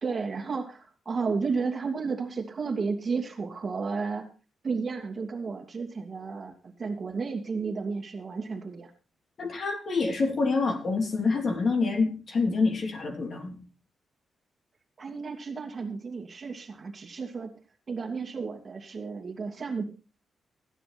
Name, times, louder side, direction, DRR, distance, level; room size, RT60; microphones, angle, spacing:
voice 1, 0.0-4.3 4.6-8.9 15.0-17.5 17.9-19.8, right 4 dB, 35° right, 1 dB, 2.5 m, -32 dB
voice 2, 9.4-13.6, left 4 dB, 50° left, 3 dB, 3.1 m, -27 dB
15.0 x 9.9 x 4.3 m, 0.35 s
cardioid pair, 125°, 0 cm